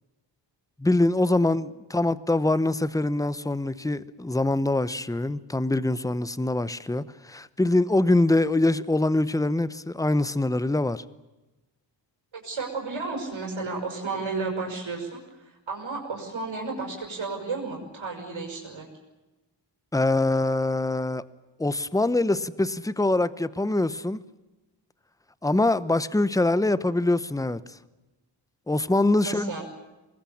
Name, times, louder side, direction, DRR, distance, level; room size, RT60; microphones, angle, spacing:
voice 1, 0.8-11.0 19.9-21.2 21.6-24.2 25.4-27.6 28.7-29.5, left 2 dB, 5° left, 0.9 m, -24 dB
voice 2, 12.3-18.9 29.2-29.6, right 4 dB, 85° right, 5.9 m, -33 dB
24.5 x 21.0 x 8.6 m
wide cardioid pair, 105°, 45 cm